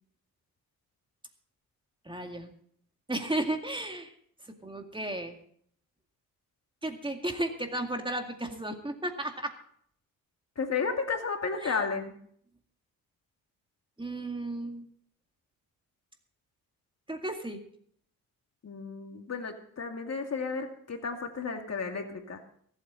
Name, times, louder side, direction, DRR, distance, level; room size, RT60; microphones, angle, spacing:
voice 1, 2.1-2.5 3.1-4.1 4.4-5.4 6.8-9.5 11.6-11.8 14.0-14.8 17.1-17.6, right 1 dB, 15° right, 4 dB, 2.1 m, -34 dB
voice 2, 10.6-12.1 18.6-22.4, left 5 dB, 45° left, 4 dB, 2.3 m, -33 dB
24.0 x 8.5 x 4.1 m, 0.63 s
supercardioid pair, 60°, 35 cm